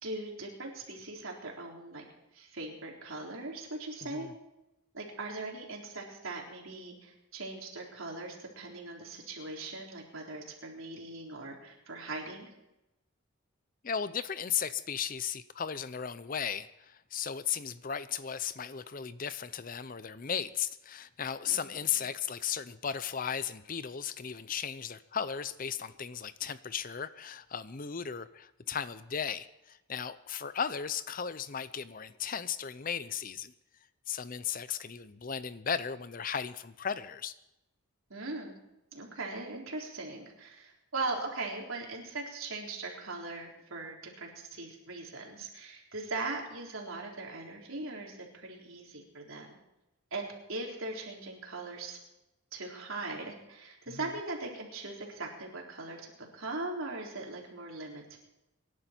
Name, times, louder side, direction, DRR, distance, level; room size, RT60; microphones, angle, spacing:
voice 1, 0.0-2.0 2.3-4.3 4.9-12.5 21.5-21.9 38.1-38.6 38.9-49.6 50.1-52.0 52.5-58.2, right 2 dB, 70° right, -1 dB, 3.8 m, -40 dB
voice 2, 4.0-4.3 13.8-33.5 34.1-37.3 53.9-54.1, left 7 dB, 40° left, 14 dB, 0.6 m, -36 dB
25.5 x 11.5 x 4.5 m, 0.91 s
head